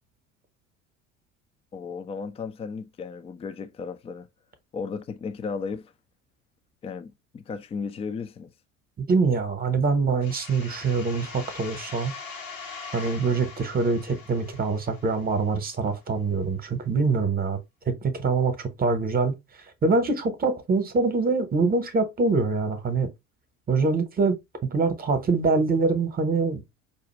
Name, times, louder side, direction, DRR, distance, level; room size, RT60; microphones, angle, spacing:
voice 1, 1.7-4.3 4.7-5.9 6.8-8.5, left 5 dB, 15° left, 0.4 m, -35 dB
voice 2, 9.0-12.1 12.9-17.6 17.9-19.4 19.8-23.1 23.7-24.4 24.7-26.6, right 4 dB, 25° right, 1.0 m, -24 dB
sound 1, 10.2-15.7, left 4 dB, 80° left, 1.1 m, -42 dB
5.1 x 2.4 x 3.0 m
figure-of-eight pair, 65°, 38 cm